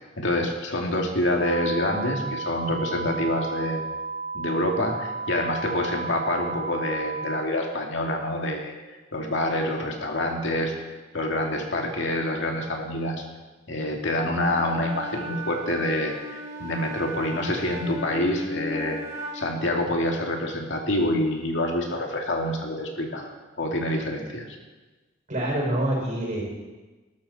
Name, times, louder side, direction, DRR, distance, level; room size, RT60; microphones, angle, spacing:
voice 1, 0.2-3.8 4.3-8.7 9.1-10.7 11.1-13.2 13.7-19.0 19.3-24.4, left 1 dB, 65° left, 1 dB, 2.5 m, -27 dB
sound 1, 1.4-7.4, right 4 dB, 40° left, 1.3 m, -33 dB
Wind instrument woodwind instrument, 14.4-19.6, equal, 15° right, 4.5 m, -36 dB
voice 2, 25.3-26.4, right 1 dB, 40° right, -3 dB, 6.2 m, -26 dB
20.0 x 12.5 x 4.3 m, 1.2 s
head